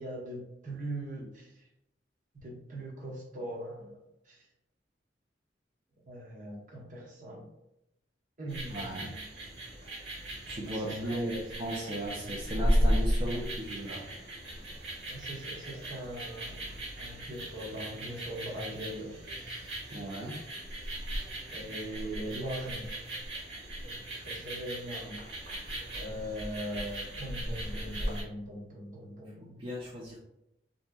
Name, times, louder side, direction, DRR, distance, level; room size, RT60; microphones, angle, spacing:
voice 1, 0.0-1.6 2.3-4.0 4.3-4.4 6.1-7.5 8.4-9.2 10.8-11.4 13.3-13.4 15.1-19.2 21.5-22.9 24.1-25.2 26.0-29.7, right 1 dB, 45° right, -2 dB, 0.8 m, -40 dB
sound 1, 8.5-28.2, equal, 70° right, 1.1 m, -35 dB
voice 2, 8.7-9.1 10.5-14.0 19.9-20.4 29.4-30.2, equal, 30° right, -5 dB, 0.5 m, -36 dB
3.4 x 2.7 x 2.2 m, 0.86 s
head